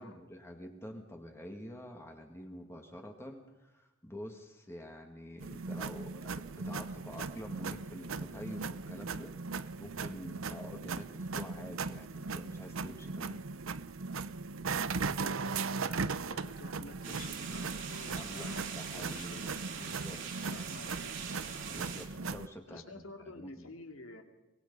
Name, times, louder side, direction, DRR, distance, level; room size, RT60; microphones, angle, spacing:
voice 1, 0.0-13.4 18.1-19.4 19.7-20.8 21.7-23.1 23.3-23.7, equal, 10° left, 3 dB, 1.8 m, -47 dB
sound 1, 5.4-22.5, right 4 dB, 75° right, 0.8 m, -38 dB
voice 2, 15.0-19.6 20.3-21.2 22.7-24.2, left 2 dB, 80° left, 5 dB, 2.5 m, -50 dB
sound 2, 17.0-22.1, right 6 dB, 60° right, 2.9 m, -42 dB
24.0 x 20.0 x 5.4 m, 1.0 s
head